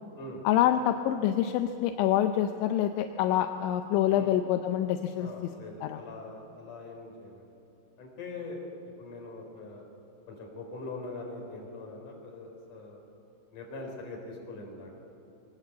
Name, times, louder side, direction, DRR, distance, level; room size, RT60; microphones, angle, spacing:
voice 1, 0.4-5.3 5.8-6.0, left 11 dB, 85° left, 7 dB, 3.1 m, -26 dB
voice 2, 5.2-7.5 8.0-8.6 9.0-9.9 10.3-13.0 13.5-14.9, left 2 dB, 45° left, 1 dB, 5.3 m, -42 dB
23.0 x 20.0 x 8.4 m, 2.8 s
omnidirectional pair, 5.4 m